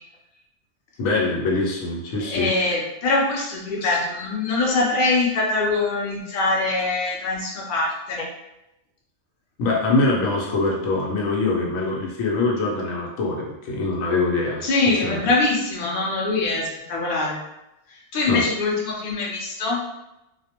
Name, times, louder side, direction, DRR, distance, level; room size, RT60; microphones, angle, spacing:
voice 1, 1.0-2.5 3.8-4.0 9.6-14.6 15.0-15.3 18.3-18.4, left 3 dB, 80° left, -2 dB, 1.0 m, -23 dB
voice 2, 2.3-8.2 14.6-17.4 18.1-19.8, left 3 dB, 50° left, -3 dB, 0.7 m, -23 dB
2.4 x 2.0 x 2.8 m, 0.91 s
omnidirectional pair, 1.4 m